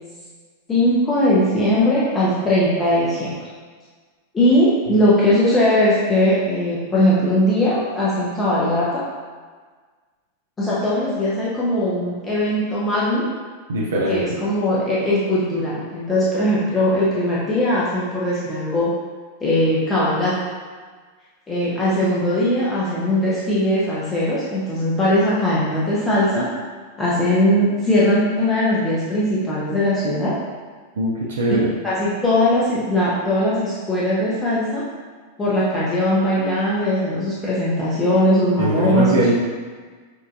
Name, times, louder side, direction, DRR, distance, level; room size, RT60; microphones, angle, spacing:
voice 1, 0.7-3.3 4.3-9.0 10.6-13.3 14.1-18.9 19.4-20.3 21.5-26.5 27.0-30.3 31.8-34.8 35.4-39.1, left 1 dB, 15° left, -8 dB, 0.8 m, -19 dB
voice 2, 13.7-14.2 31.0-31.7 38.6-39.3, right 1 dB, 65° right, -4 dB, 0.5 m, -21 dB
6.4 x 2.5 x 2.5 m, 1.5 s
figure-of-eight pair, 90°, 0 cm